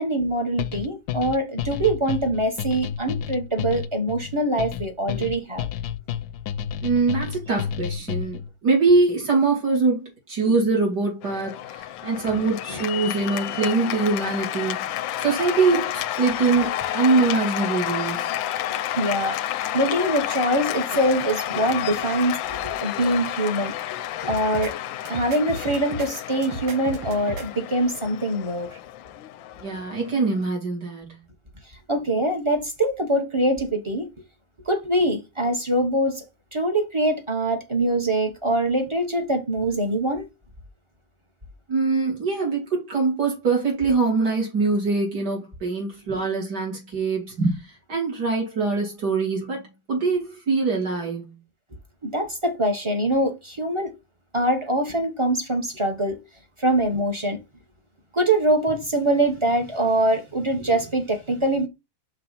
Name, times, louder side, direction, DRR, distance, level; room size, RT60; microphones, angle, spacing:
voice 1, 0.0-5.7 10.4-10.5 12.3-12.4 12.7-12.8 18.7-23.7 24.2-24.7 25.1-28.8 31.9-34.1 34.7-36.2 36.5-40.3 46.1-46.2 52.0-53.9 54.3-56.2 56.6-57.4 58.1-61.7, right 1 dB, 20° right, 0.8 m, -24 dB
sound 1, 0.6-8.5, left 8 dB, 70° left, 1.0 m, -30 dB
voice 2, 6.8-14.9 15.2-18.3 29.6-31.2 41.7-51.4, right 4 dB, 60° right, 3.3 m, -23 dB
Cheering / Applause, 11.2-30.5, left 12 dB, 90° left, 1.3 m, -30 dB
sound 2, 24.3-24.7 25.1-26.1 26.4-27.5, right 2 dB, 85° right, 2.2 m, -34 dB
5.8 x 3.3 x 5.6 m
omnidirectional pair, 2.0 m